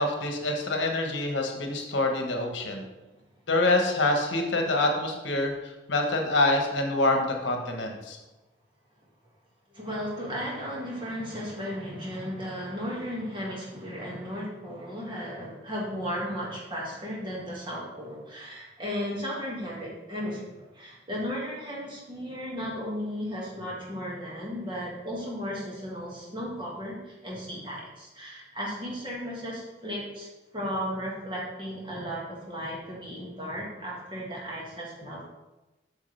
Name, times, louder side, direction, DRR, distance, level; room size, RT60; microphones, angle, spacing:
voice 1, 0.0-2.8 3.5-8.2, left 2 dB, 80° left, 3 dB, 1.2 m, -26 dB
voice 2, 9.7-30.3 30.5-35.3, equal, 25° right, -4 dB, 1.9 m, -35 dB
8.1 x 6.2 x 3.4 m, 1.1 s
head